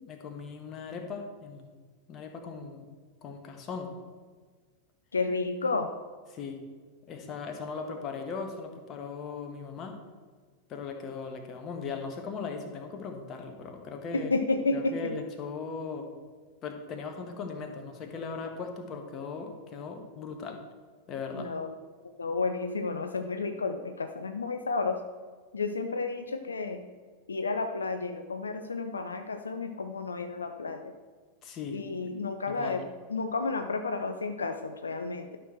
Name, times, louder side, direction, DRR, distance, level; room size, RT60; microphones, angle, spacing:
voice 1, 0.1-1.7 2.1-2.9 3.2-3.9 6.3-6.6 7.1-10.0 10.7-14.3 14.7-16.1 16.6-20.6 21.1-21.5 31.4-31.8 32.5-32.8, left 5 dB, 30° left, 5 dB, 1.3 m, -38 dB
voice 2, 5.1-5.9 14.1-15.1 21.3-21.7 22.2-25.0 25.5-26.8 27.3-30.9 31.7-35.4, left 3 dB, 75° left, 7 dB, 0.5 m, -31 dB
12.0 x 6.1 x 4.4 m, 1.5 s
figure-of-eight pair, 90°, 0 cm